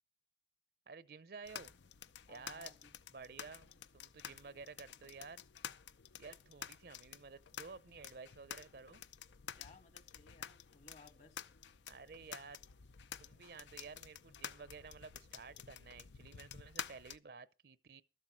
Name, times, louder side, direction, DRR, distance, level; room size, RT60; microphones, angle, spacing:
voice 1, 0.9-1.7 2.3-2.7 3.1-5.4 6.2-9.0 11.9-12.6 13.2-18.0, right 4 dB, 60° right, 0.6 m, -53 dB
sound 1, 1.4-17.2, left 9 dB, 85° left, 0.6 m, -51 dB
voice 2, 2.3-2.9 9.6-11.5, left 3 dB, 40° left, 1.3 m, -61 dB
13.0 x 7.6 x 6.1 m
head